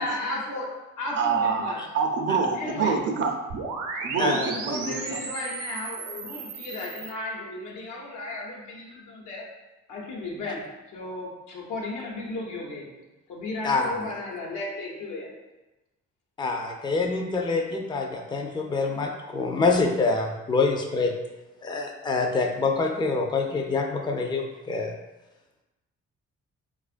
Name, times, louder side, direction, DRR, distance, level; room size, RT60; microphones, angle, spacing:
voice 1, 0.0-1.8 2.5-3.0 4.4-9.4 9.9-10.7 10.9-12.9 13.3-15.3, left 2 dB, 85° left, -3 dB, 0.9 m, -34 dB
voice 2, 1.1-3.4 4.0-5.2, right 5 dB, 40° right, 3 dB, 0.5 m, -26 dB
sound 1, 3.5-7.1, right 4 dB, 85° right, 0.6 m, -35 dB
voice 3, 4.2-4.5 13.6-14.0 16.4-21.1 21.6-24.9, left 3 dB, 15° left, 2 dB, 0.4 m, -26 dB
4.3 x 2.4 x 2.4 m, 1.1 s
cardioid pair, 90°, 30 cm